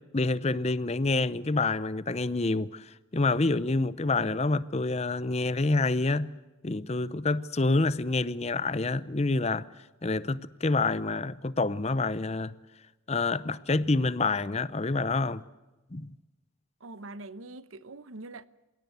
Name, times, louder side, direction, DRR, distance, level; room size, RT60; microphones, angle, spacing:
voice 1, 0.0-6.3 6.6-9.7 10.0-12.5 13.1-15.4 15.9-16.1, left 3 dB, 30° left, 0.7 m, -27 dB
voice 2, 16.8-18.5, right 2 dB, 90° right, 1.0 m, -43 dB
28.5 x 17.0 x 8.1 m
head